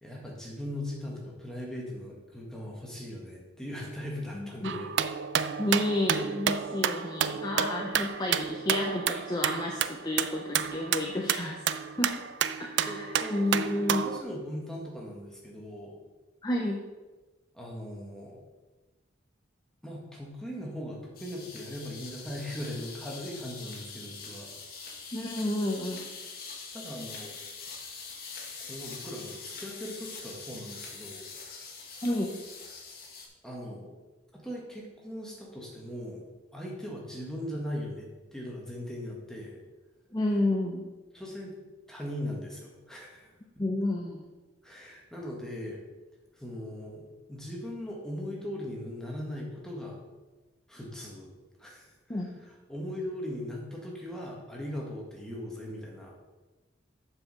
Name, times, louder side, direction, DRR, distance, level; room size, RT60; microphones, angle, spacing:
voice 1, 0.0-4.9 12.8-16.0 17.5-18.4 19.8-24.5 26.7-27.3 28.7-31.2 33.4-34.0 34.3-36.3 36.5-39.6 41.1-41.5 41.9-43.6 44.6-45.8 46.4-50.0 50.7-51.3 51.6-56.1, left 1 dB, 5° left, -3 dB, 1.5 m, -39 dB
voice 2, 4.3-4.8 5.6-11.6 12.0-12.1 12.6-14.0 16.4-16.8 25.1-26.1 32.0-32.4 40.1-40.9 43.6-44.2 52.1-52.3, left 1 dB, 20° left, 0 dB, 0.6 m, -30 dB
sound 1, 4.6-14.2, right 8 dB, 65° right, 0.4 m, -30 dB
sound 2, 21.1-33.3, left 4 dB, 50° left, 1.3 m, -44 dB
7.5 x 4.7 x 6.2 m, 1.2 s
head